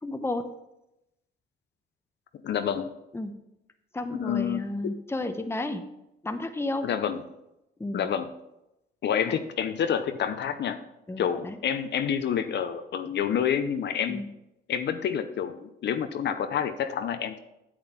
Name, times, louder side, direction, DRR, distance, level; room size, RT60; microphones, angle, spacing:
voice 1, 0.0-0.5 3.1-3.3 3.9-5.8 6.2-6.9 7.8-8.1 9.3-9.4 11.1-11.6 14.1-14.3, left 2 dB, 10° left, 8 dB, 0.9 m, -32 dB
voice 2, 2.4-2.9 4.2-4.9 6.8-7.2 7.9-8.3 9.0-10.8 11.2-14.2 14.7-17.4, left 8 dB, 60° left, 9 dB, 0.8 m, -28 dB
8.7 x 8.0 x 4.3 m, 0.88 s
cardioid pair, 90°, 20 cm